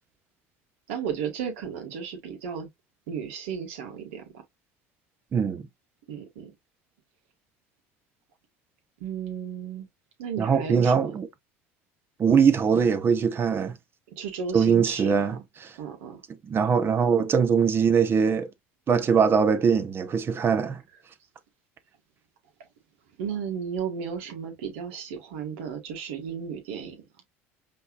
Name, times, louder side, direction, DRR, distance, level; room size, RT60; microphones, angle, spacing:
voice 1, 0.9-2.7 3.1-4.4 6.1-6.5 9.0-9.9 10.2-11.1 14.1-15.3 15.8-16.2 23.2-27.0, right 7 dB, 80° right, 2.1 m, -34 dB
voice 2, 5.3-5.6 10.4-11.3 12.2-13.8 14.5-15.7 16.4-18.5 18.9-20.8, right 6 dB, 35° right, 0.9 m, -22 dB
5.4 x 3.4 x 2.4 m
supercardioid pair, 90°, 7 cm